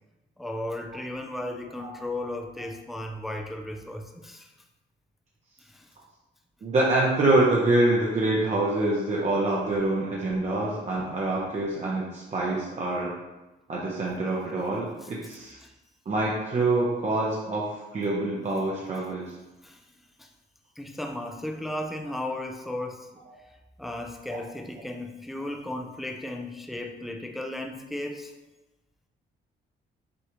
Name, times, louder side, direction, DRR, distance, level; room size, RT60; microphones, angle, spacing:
voice 1, 0.4-4.5 5.6-5.9 15.6-15.7 19.6-19.8 20.2-20.3 20.8-23.1 23.8-28.3, left 1 dB, ahead, 3 dB, 0.4 m, -35 dB
voice 2, 6.6-13.1 13.7-15.6 16.1-19.4 23.3-23.4 24.3-24.4, right 2 dB, 35° right, -4 dB, 0.7 m, -26 dB
6.2 x 2.3 x 3.0 m, 1.1 s
cardioid pair, 90°, 20 cm